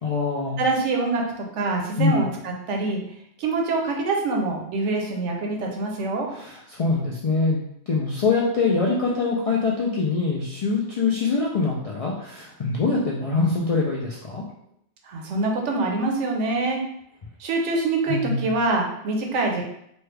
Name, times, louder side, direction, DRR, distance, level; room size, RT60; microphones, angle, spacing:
voice 1, 0.0-0.6 2.0-2.2 6.3-14.4 18.1-18.5, left 4 dB, 60° left, -4 dB, 0.3 m, -24 dB
voice 2, 0.6-1.2 1.5-3.0 3.4-6.3 15.0-16.8 17.4-19.6, right 3 dB, 85° right, 1 dB, 1.0 m, -25 dB
3.1 x 2.3 x 3.3 m, 0.73 s
omnidirectional pair, 1.2 m